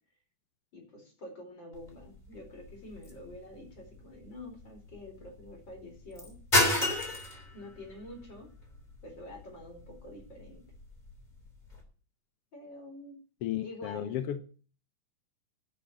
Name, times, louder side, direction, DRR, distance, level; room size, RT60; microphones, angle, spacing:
voice 1, 0.7-6.4 7.5-8.5 9.0-10.6 12.5-13.2 13.6-14.4, left 1 dB, 35° left, 5.0 m, -47 dB
sound 1, 1.7-11.8, left 1 dB, 15° left, 3.4 m, -35 dB
voice 2, 13.4-14.4, left 11 dB, 75° left, 1.4 m, -34 dB
11.5 x 6.2 x 9.0 m
omnidirectional pair, 3.4 m